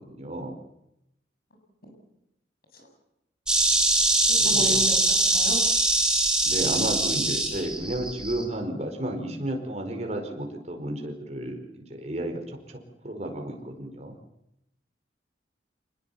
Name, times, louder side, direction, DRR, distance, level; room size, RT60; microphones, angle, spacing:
voice 1, 0.1-0.5 4.4-4.8 6.4-12.4 12.7-12.8 13.0-14.1, right 1 dB, 35° right, 3 dB, 5.0 m, -32 dB
Insect, 3.5-8.4, right 2 dB, 5° right, 4.0 m, -23 dB
voice 2, 4.3-5.6, left 2 dB, 55° left, 3 dB, 7.7 m, -33 dB
26.5 x 20.5 x 7.1 m, 0.82 s
head